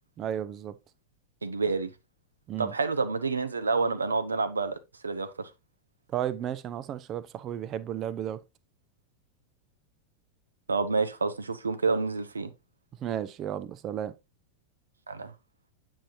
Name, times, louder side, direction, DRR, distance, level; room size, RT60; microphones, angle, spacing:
voice 1, 0.2-0.7 2.5-2.7 6.1-8.4 13.0-14.1, right 10 dB, 30° right, 0.6 m, -33 dB
voice 2, 1.4-1.9 2.6-4.8 5.0-5.5 10.7-12.5 15.1-15.3, right 4 dB, 75° right, 0.8 m, -28 dB
8.7 x 5.5 x 2.7 m
figure-of-eight pair, 90°, 0 cm